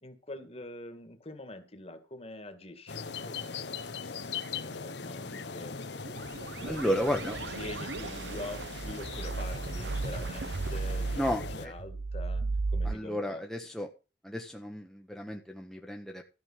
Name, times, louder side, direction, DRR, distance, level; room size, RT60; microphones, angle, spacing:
voice 1, 0.0-5.8 6.4-12.5 12.7-13.4, left 1 dB, 35° left, 8 dB, 2.0 m, -45 dB
sound 1, 2.9-11.7, left 5 dB, 75° left, 1.0 m, -40 dB
sound 2, 6.1-12.9, right 3 dB, 80° right, 0.7 m, -35 dB
voice 2, 6.7-7.4 11.2-11.7 12.8-13.9 14.2-16.2, equal, ahead, 1 dB, 1.2 m, -33 dB
13.0 x 5.3 x 7.3 m, 0.31 s
head